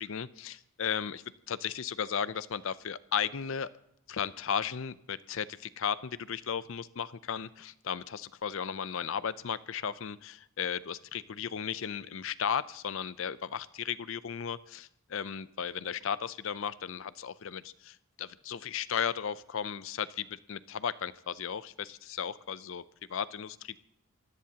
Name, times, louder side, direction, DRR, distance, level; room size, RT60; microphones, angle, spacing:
voice 1, 0.0-3.7 4.1-22.8 23.1-23.8, left 7 dB, 60° left, 16 dB, 0.5 m, -35 dB
28.0 x 16.0 x 2.9 m, 0.77 s
head